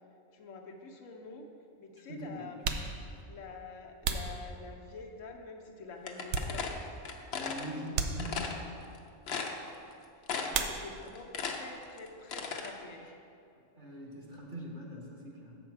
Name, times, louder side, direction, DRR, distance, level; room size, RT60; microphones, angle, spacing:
voice 1, 0.3-1.4 1.8-2.8 3.2-6.8 9.4-9.7 10.1-13.2, left 3 dB, 80° left, 2 dB, 1.2 m, -47 dB
sound 1, 0.7-0.8 1.8-1.9 2.5-5.1 5.6-7.0 7.3-7.5 7.9-8.7 10.5-11.3 11.5-12.2 12.5-14.7, right 5 dB, 70° right, 0.9 m, -38 dB
voice 2, 2.1-2.4 7.3-8.4 10.4-10.6 13.7-15.5, equal, 40° right, -2 dB, 1.3 m, -42 dB
sound 2, 6.1-7.7 8.2-8.6 8.9-9.0 9.3-9.9 10.3-10.7 11.0-12.7, left 5 dB, 60° left, 0.9 m, -36 dB
7.2 x 6.9 x 4.6 m, 2.4 s
omnidirectional pair, 1.3 m